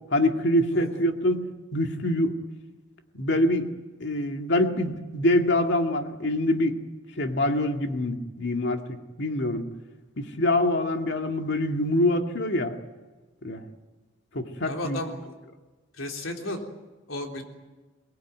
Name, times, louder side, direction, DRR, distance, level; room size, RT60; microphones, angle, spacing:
voice 1, 0.1-1.5 1.7-2.4 3.1-3.7 4.0-6.8 7.2-9.7 10.2-12.8 13.4-13.6 14.3-15.0, left 1 dB, 60° left, 4 dB, 2.2 m, -25 dB
voice 2, 0.7-1.0 14.7-15.4 15.9-16.6 17.1-17.4, left 1 dB, 85° left, 2 dB, 3.6 m, -34 dB
23.0 x 20.0 x 9.3 m, 1.2 s
head